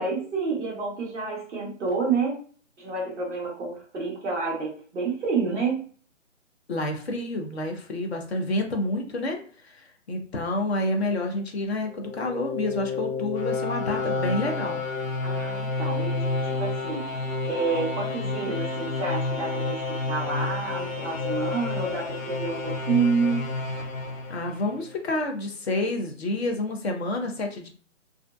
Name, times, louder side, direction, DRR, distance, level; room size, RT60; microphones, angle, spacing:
voice 1, 0.0-2.4 2.8-4.7 4.9-5.8 15.2-17.1 17.5-23.5, right 4 dB, ahead, -4 dB, 0.5 m, -29 dB
voice 2, 6.7-14.8 24.3-27.7, left 2 dB, 55° left, 3 dB, 0.7 m, -29 dB
sound 1, 11.9-24.9, left 3 dB, 85° left, 0.7 m, -30 dB
2.4 x 2.1 x 2.5 m, 0.43 s
figure-of-eight pair, 150°, 39 cm